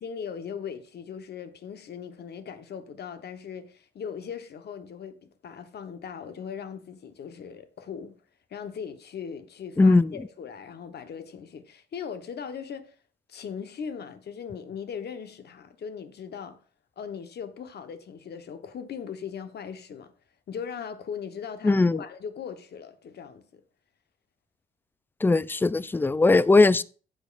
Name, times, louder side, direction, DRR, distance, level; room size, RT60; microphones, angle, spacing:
voice 1, 0.0-8.1 8.5-12.9 13.3-16.6 17.0-20.1 20.5-23.6, left 7 dB, 55° left, 1.1 m, -39 dB
voice 2, 9.8-10.1 21.6-22.0 25.2-26.8, left 3 dB, 10° left, 0.3 m, -19 dB
15.0 x 5.2 x 2.5 m
cardioid pair, 90°, 20 cm